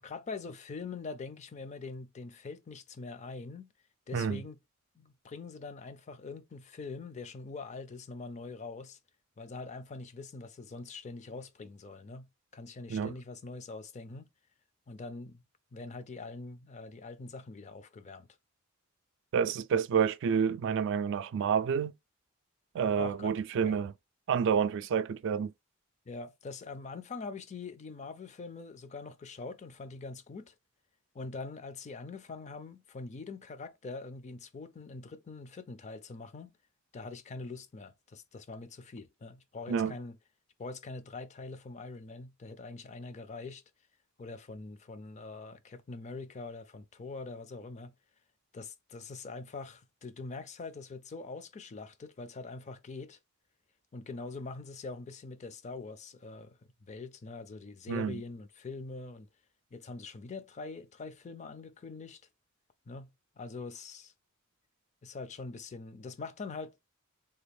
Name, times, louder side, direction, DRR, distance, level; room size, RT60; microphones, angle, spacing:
voice 1, 0.0-3.7 4.1-4.6 5.0-9.0 9.4-12.3 12.5-14.3 14.9-15.4 15.7-18.3 23.0-23.3 23.6-23.8 26.1-30.5 31.1-36.5 36.9-40.2 40.6-43.6 44.2-47.9 48.5-53.2 53.9-59.3 59.7-62.2 62.9-63.1 63.4-64.1 65.0-66.7, left 3 dB, 35° left, 0.4 m, -43 dB
voice 2, 19.3-21.9 22.7-23.9 24.3-25.5 39.7-39.9 57.9-58.2, right 7 dB, 60° right, 0.3 m, -29 dB
3.4 x 2.2 x 3.3 m
head